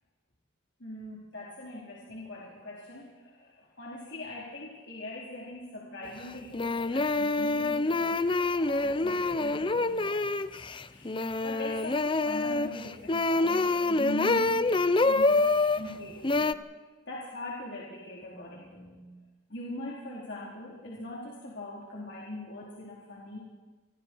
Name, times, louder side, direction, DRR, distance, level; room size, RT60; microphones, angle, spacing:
voice 1, 0.8-10.5 10.8-16.5 17.1-19.1 19.5-23.4, left 1 dB, 65° left, -4 dB, 4.0 m, -42 dB
sound 1, 6.0-6.1 6.5-15.8 16.2-16.5, left 2 dB, 25° left, 0.6 m, -26 dB
27.5 x 23.0 x 4.6 m, 1.3 s
head